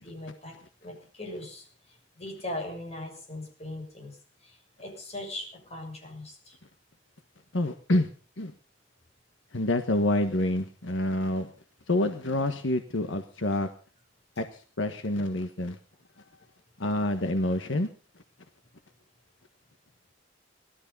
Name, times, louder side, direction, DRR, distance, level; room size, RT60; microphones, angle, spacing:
voice 1, 0.0-6.6, left 1 dB, 35° left, 1 dB, 6.7 m, -40 dB
voice 2, 7.5-8.1 8.4-8.5 9.5-11.5 11.9-13.7 14.4-15.8 16.8-17.9, left 1 dB, 75° left, 8 dB, 1.4 m, -27 dB
18.5 x 13.0 x 5.5 m, 0.39 s
head